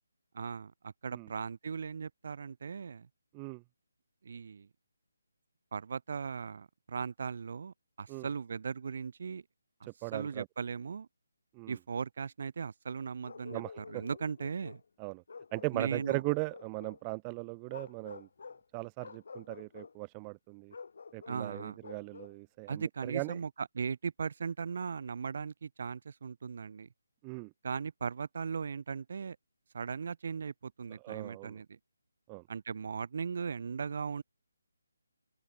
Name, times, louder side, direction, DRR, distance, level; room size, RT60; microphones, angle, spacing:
voice 1, 0.3-3.1 4.2-4.7 5.7-9.4 10.1-11.1 11.7-14.8 15.7-16.2 21.3-21.8 22.7-26.9 27.6-29.4 29.7-31.8 32.5-34.2, right 6 dB, 40° right, 0.7 m, -38 dB
voice 2, 10.0-10.5 11.5-11.8 13.5-14.0 15.0-15.2 15.5-18.3 18.7-20.7 21.1-23.4 27.2-27.5 31.0-31.6 32.3-32.4, right 37 dB, 15° right, 0.3 m, -38 dB
Bark, 13.2-14.9 15.3-17.0 17.7-18.6 19.0-19.9 20.7-22.4, left 5 dB, 50° left, 4.0 m, -49 dB
open air
hypercardioid pair, 175°, 0 cm